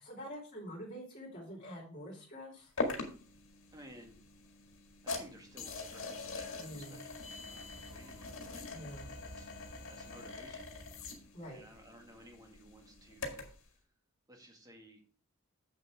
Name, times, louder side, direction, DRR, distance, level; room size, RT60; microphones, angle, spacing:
voice 1, 0.0-2.7 6.6-7.0 8.7-9.1 11.3-11.6, equal, 35° left, -3 dB, 2.9 m, -46 dB
sound 1, 2.8-13.6, left 3 dB, 65° left, 1.9 m, -43 dB
voice 2, 3.7-4.2 5.0-8.8 9.2-9.5 9.9-13.9 14.3-15.0, equal, 20° right, 2 dB, 1.9 m, -57 dB
7.7 x 6.6 x 4.8 m, 0.39 s
head